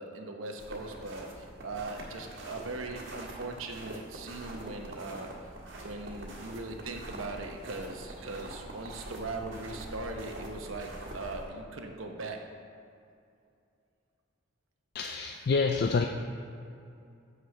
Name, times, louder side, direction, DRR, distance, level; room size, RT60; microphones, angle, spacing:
voice 1, 0.0-5.3 5.8-12.4, right 2 dB, 85° right, 3 dB, 1.0 m, -40 dB
sound 1, 0.6-11.4, right 1 dB, 70° right, 1.6 m, -44 dB
voice 2, 14.9-16.1, left 4 dB, 50° left, 4 dB, 0.4 m, -27 dB
6.4 x 6.4 x 7.2 m, 2.5 s
head